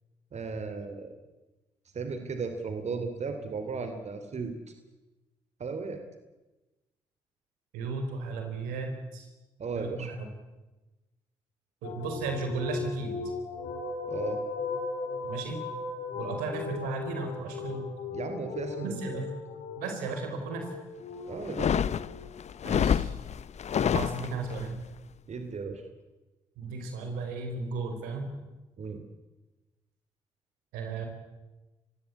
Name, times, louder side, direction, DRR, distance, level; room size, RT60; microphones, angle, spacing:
voice 1, 0.3-1.1 1.9-4.5 5.6-6.0 9.6-10.1 14.0-14.4 18.1-19.2 21.2-21.8 25.3-25.8 28.8-29.0, right 4 dB, 50° right, 7 dB, 3.2 m, -35 dB
voice 2, 7.7-9.3 9.7-10.3 11.8-13.1 15.2-15.6 16.1-17.9 18.8-19.3 19.8-20.7 22.6-23.1 23.8-24.7 26.6-28.3 30.7-31.1, right 4 dB, 85° right, 4 dB, 4.5 m, -35 dB
sound 1, 11.8-22.5, left 4 dB, 75° left, 5.2 m, -37 dB
sound 2, 21.4-24.7, left 8 dB, 55° left, 0.8 m, -28 dB
30.0 x 17.0 x 8.5 m, 1.1 s
hypercardioid pair, 50°, 14 cm